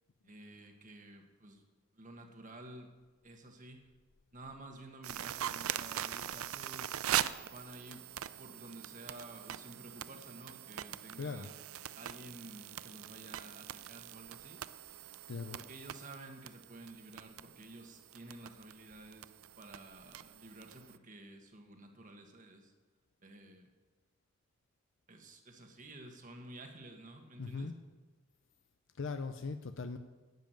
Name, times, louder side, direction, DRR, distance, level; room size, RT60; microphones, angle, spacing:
voice 1, 0.2-1.6 1.9-2.9 3.2-3.8 4.3-7.0 7.4-11.5 11.9-14.6 15.5-19.3 19.6-22.7 23.2-23.7 25.1-27.7, right 2 dB, 40° right, 4 dB, 1.5 m, -52 dB
sound 1, 5.0-21.0, right 11 dB, 85° right, 0.5 m, -42 dB
voice 2, 11.2-11.5 15.3-15.6 27.4-27.8 29.0-30.0, left 4 dB, 65° left, 8 dB, 0.6 m, -39 dB
11.0 x 7.4 x 9.0 m, 1.3 s
head